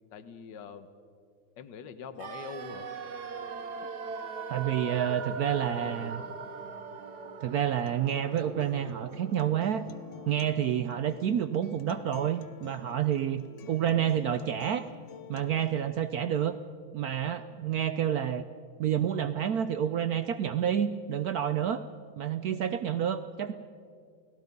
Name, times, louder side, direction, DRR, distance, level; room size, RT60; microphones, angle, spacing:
voice 1, 0.1-0.9 1.6-2.9 5.6-6.3, left 7 dB, 65° left, 11 dB, 1.7 m, -44 dB
sound 1, 2.2-12.1 12.4-12.5, right 5 dB, 55° right, 1.7 m, -41 dB
voice 2, 4.5-6.2 7.4-9.9 10.3-14.9 15.3-16.6 16.9-18.4 18.8-21.8 22.2-23.5, right 9 dB, 70° right, 11 dB, 0.9 m, -29 dB
Acoustic guitar, 7.9-15.8, left 8 dB, 80° left, 1.7 m, -49 dB
29.0 x 18.5 x 5.3 m, 2.3 s
omnidirectional pair, 2.2 m